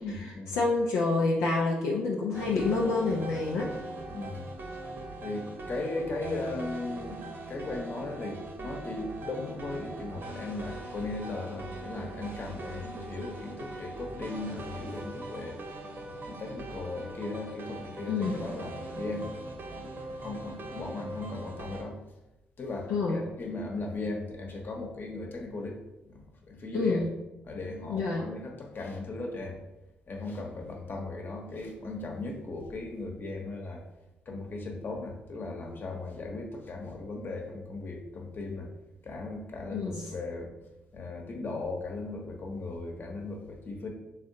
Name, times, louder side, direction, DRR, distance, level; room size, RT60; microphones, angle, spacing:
voice 1, 0.0-0.6 4.1-4.5 5.2-7.2 7.5-15.6 16.2-19.3 19.7-22.0 22.6-25.8 26.1-27.0 27.4-29.6 30.1-33.8 34.3-38.7 39.0-40.5 40.9-43.9, left 2 dB, 45° left, 1 dB, 1.0 m, -37 dB
voice 2, 0.6-3.7 18.1-18.4 22.9-23.2 26.7-27.1 27.9-28.3 39.7-40.1, left 3 dB, 70° left, -3 dB, 0.5 m, -27 dB
sound 1, 2.3-21.8, right 2 dB, 45° right, 0.9 m, -41 dB
4.0 x 3.6 x 2.7 m, 0.98 s
hypercardioid pair, 45°, 5 cm